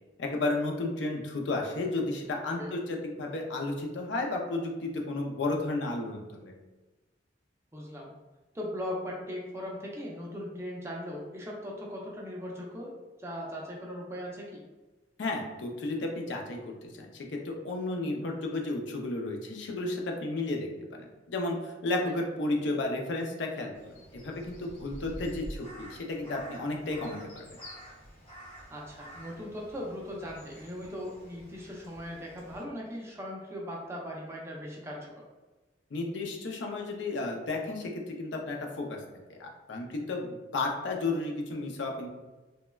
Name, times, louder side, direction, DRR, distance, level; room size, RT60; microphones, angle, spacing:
voice 1, 0.2-6.5 15.2-27.4 35.9-39.0 39.3-42.1, left 2 dB, 80° left, 1 dB, 0.5 m, -33 dB
voice 2, 7.7-8.1 8.5-14.6 22.1-22.2 28.7-35.1, equal, 15° right, -3 dB, 0.5 m, -39 dB
Crow, 23.7-32.6, equal, 35° left, 0.9 m, -48 dB
3.1 x 2.1 x 2.2 m, 1.2 s
head